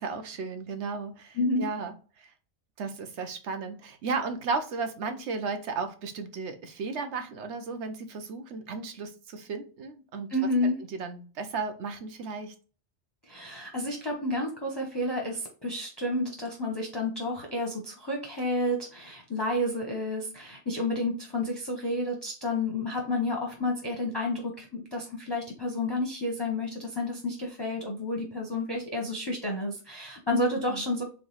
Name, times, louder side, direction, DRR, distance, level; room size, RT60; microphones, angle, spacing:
voice 1, 0.0-2.3 2.8-10.3 10.9-12.5 30.7-30.8, right 4 dB, 75° right, 8 dB, 1.0 m, -34 dB
voice 2, 1.3-1.7 10.3-10.8 13.3-31.0, left 1 dB, 25° left, -1 dB, 0.7 m, -30 dB
3.6 x 3.2 x 4.0 m, 0.37 s
omnidirectional pair, 1.2 m